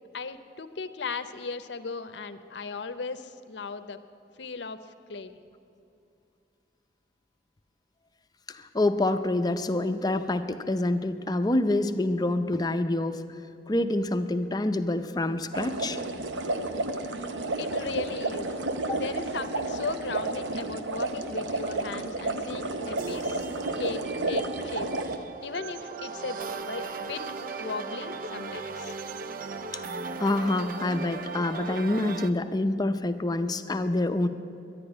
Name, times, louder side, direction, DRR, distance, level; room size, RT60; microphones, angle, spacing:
voice 1, 0.1-4.0 4.3-4.8 5.1-5.3 16.9-17.1 17.6-18.5 18.9-23.5 23.8-27.2 27.6-28.9, left 4 dB, 75° left, 10 dB, 0.7 m, -37 dB
voice 2, 8.5-13.2 13.7-16.0 18.9-19.0 29.7-29.8 30.2-34.3, left 2 dB, 20° left, 9 dB, 0.5 m, -27 dB
sound 1, 15.5-25.2, right 2 dB, 85° right, 0.8 m, -31 dB
sound 2, 22.8-32.3, right 4 dB, 50° right, 0.5 m, -37 dB
11.0 x 10.5 x 9.9 m, 2.6 s
head